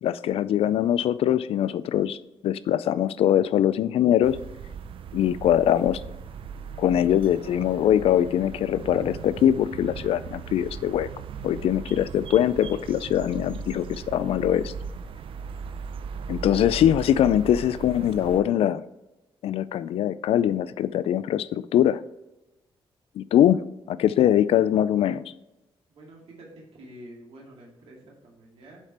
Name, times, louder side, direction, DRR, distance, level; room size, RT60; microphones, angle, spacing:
voice 1, 0.0-2.2 2.4-4.4 5.1-6.0 6.8-11.1 11.4-14.7 16.3-18.8 19.4-22.0 23.2-23.6 23.9-25.2, left 10 dB, 90° left, 16 dB, 0.3 m, -22 dB
sound 1, 4.2-18.4, right 6 dB, 65° right, 0.5 m, -38 dB
voice 2, 25.9-28.8, right 1 dB, 85° right, -2 dB, 2.3 m, -47 dB
7.4 x 5.0 x 4.3 m, 0.98 s
wide cardioid pair, 165°, 10 cm